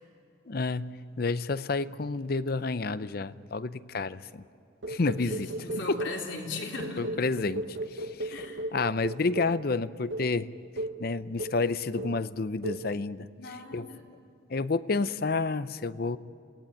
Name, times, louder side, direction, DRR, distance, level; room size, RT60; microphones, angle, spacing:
voice 1, 0.5-4.4 4.9-5.5 5.9-6.0 7.0-7.6 7.9-8.3 8.7-10.5 11.0-13.3 13.7-13.9 14.5-16.2, left 3 dB, 50° left, 15 dB, 0.6 m, -30 dB
sound 1, 4.8-6.3 6.8-9.6 10.1-10.3 10.8-11.0 11.4-11.7 12.0-12.3 12.6-12.9, right 1 dB, 80° right, 1.2 m, -36 dB
voice 2, 5.2-7.1 8.3-8.7 13.4-14.0, left 3 dB, 75° left, 0 dB, 3.8 m, -38 dB
27.5 x 18.5 x 9.1 m, 2.6 s
head